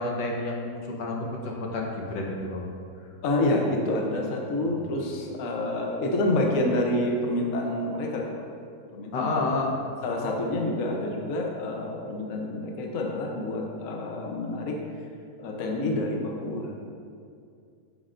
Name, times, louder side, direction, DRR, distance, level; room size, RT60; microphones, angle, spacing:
voice 1, 0.0-2.7 4.6-4.9 9.1-9.7, left 2 dB, 75° left, -1 dB, 1.6 m, -30 dB
voice 2, 3.2-8.4 8.9-9.4 10.0-14.8 15.4-16.7, left 1 dB, 55° left, 0 dB, 1.1 m, -28 dB
8.6 x 7.4 x 2.5 m, 2.4 s
omnidirectional pair, 1.9 m